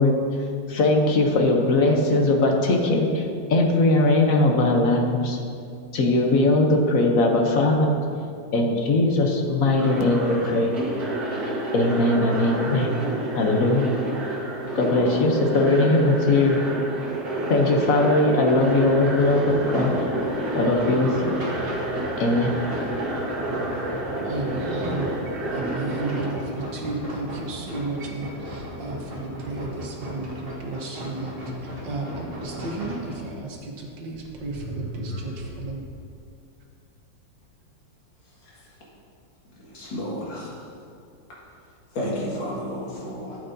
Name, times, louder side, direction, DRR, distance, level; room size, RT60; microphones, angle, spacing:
voice 1, 0.0-5.4 5.9-7.9 8.5-10.7 11.7-12.9 13.3-13.9 14.7-16.6 17.5-19.9 20.5-21.4 22.2-22.5, left 2 dB, 55° left, 2 dB, 1.1 m, -20 dB
sound 1, 9.8-26.3, right 1 dB, 55° right, 1.8 m, -29 dB
sound 2, 18.6-33.1, equal, 35° right, 1.5 m, -36 dB
voice 2, 24.2-25.1 25.5-35.8, right 3 dB, 75° right, 0 dB, 1.8 m, -33 dB
sound 3, 28.3-30.0 33.0-33.1 34.0-35.9, equal, 30° left, 2.3 m, -39 dB
voice 3, 39.6-40.5 41.9-43.4, equal, 85° left, -5 dB, 2.6 m, -31 dB
12.5 x 8.0 x 2.7 m, 2.4 s
omnidirectional pair, 2.0 m